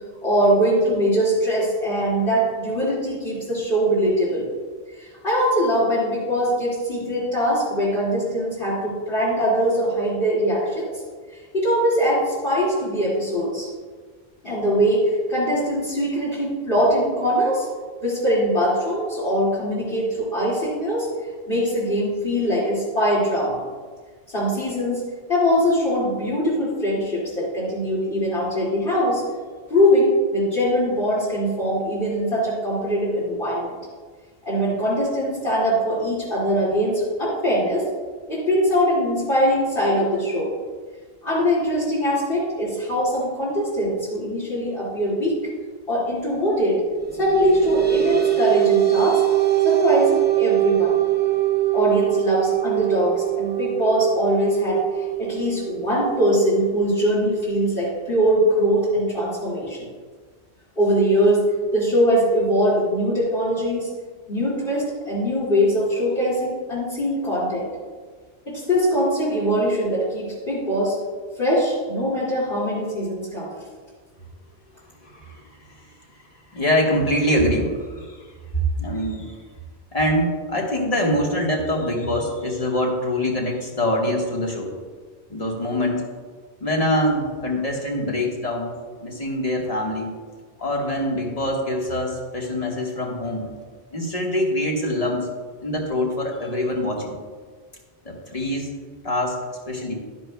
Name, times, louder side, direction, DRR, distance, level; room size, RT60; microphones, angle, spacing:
voice 1, 0.2-4.5 5.0-10.9 11.5-13.7 14.4-17.7 18.0-21.1 21.5-23.6 24.3-25.0 25.3-29.2 29.7-33.8 34.4-37.9 38.3-40.5 41.2-45.4 45.9-46.8 47.2-49.2 49.6-51.0 51.7-59.9 60.8-61.4 61.7-63.9 64.3-67.7 68.5-71.0 71.4-73.5, equal, 55° left, -8 dB, 2.6 m, -22 dB
sound 1, 47.1-58.0, right 15 dB, 10° right, 0.6 m, -23 dB
voice 2, 75.0-75.7 76.5-78.3 78.5-79.3 79.9-84.7 85.3-86.0 86.6-88.7 89.0-90.1 90.6-93.5 93.9-95.3 95.6-97.1 98.0-98.7 99.0-100.0, left 1 dB, 35° left, -1 dB, 1.6 m, -24 dB
11.5 x 10.5 x 2.3 m, 1.5 s
omnidirectional pair, 1.1 m